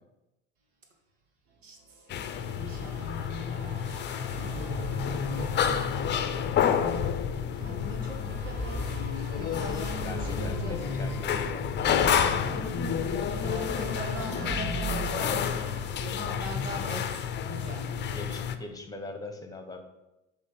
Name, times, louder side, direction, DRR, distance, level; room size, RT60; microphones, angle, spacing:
sound 1, 1.5-17.1, right 2 dB, 60° right, 1.9 m, -50 dB
voice 1, 1.6-2.0 2.5-4.6 5.1-5.5 7.6-9.0 9.4-11.0 12.2-12.9 13.4-15.6 16.0-18.4, right 1 dB, 80° right, 1 dB, 1.8 m, -41 dB
sound 2, 2.1-18.6, left 8 dB, 30° left, 0.6 m, -30 dB
sound 3, 4.3-16.7, right 1 dB, 10° right, 1.2 m, -39 dB
voice 2, 9.5-11.7 13.7-14.0 18.1-19.8, left 2 dB, 10° left, 5 dB, 1.3 m, -41 dB
6.4 x 5.2 x 5.6 m, 0.96 s
hypercardioid pair, 80°, 37 cm